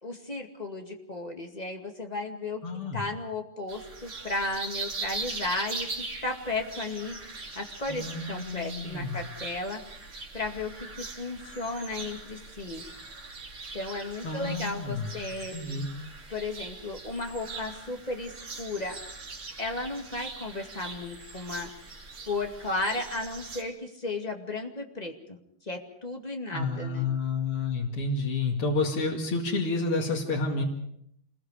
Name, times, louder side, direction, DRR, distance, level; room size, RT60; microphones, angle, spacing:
voice 1, 0.0-2.6 2.9-5.9 6.2-7.2 7.6-9.8 10.3-12.8 13.7-15.6 16.3-19.0 19.6-21.7 22.3-27.1, left 2 dB, 20° left, 3 dB, 2.2 m, -34 dB
voice 2, 2.6-3.0 7.9-9.2 14.2-15.1 15.5-15.9 26.5-30.6, left 3 dB, 85° left, 0 dB, 3.2 m, -30 dB
sound 1, 3.7-23.6, right 3 dB, 65° right, 4.1 m, -41 dB
27.5 x 21.5 x 5.0 m, 0.72 s
omnidirectional pair, 2.3 m